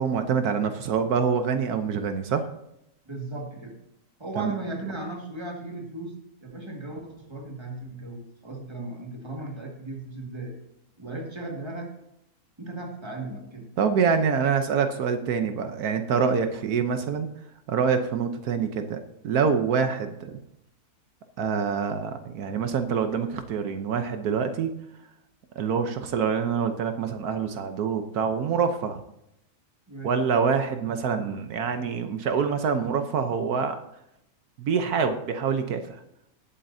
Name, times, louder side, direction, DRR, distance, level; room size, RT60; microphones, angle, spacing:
voice 1, 0.0-2.5 4.4-4.5 13.8-17.3 17.7-19.0 19.2-20.4 21.4-24.7 25.6-29.0 30.0-33.8 34.6-36.0, right 6 dB, 80° right, 7 dB, 1.3 m, -26 dB
voice 2, 3.1-3.8 4.2-10.6 11.0-11.9 12.6-13.7 29.9-30.2, right 2 dB, 20° right, 1 dB, 1.9 m, -36 dB
18.0 x 8.4 x 2.7 m, 0.81 s
omnidirectional pair, 1.6 m